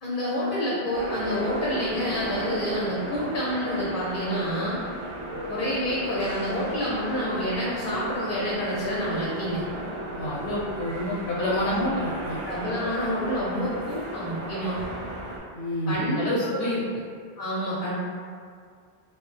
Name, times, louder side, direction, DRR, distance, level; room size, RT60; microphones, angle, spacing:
voice 1, 0.0-4.8 5.5-9.6 11.6-12.0 12.4-14.8 15.9-16.2 16.5-16.6 17.4-17.9, equal, 60° left, -7 dB, 0.8 m, -28 dB
sound 1, 0.9-15.4, right 1 dB, 45° right, 0.4 m, -35 dB
voice 2, 10.1-12.4 15.5-16.8, left 1 dB, 85° left, -6 dB, 1.0 m, -28 dB
3.3 x 2.0 x 3.1 m, 2.1 s
omnidirectional pair, 1.1 m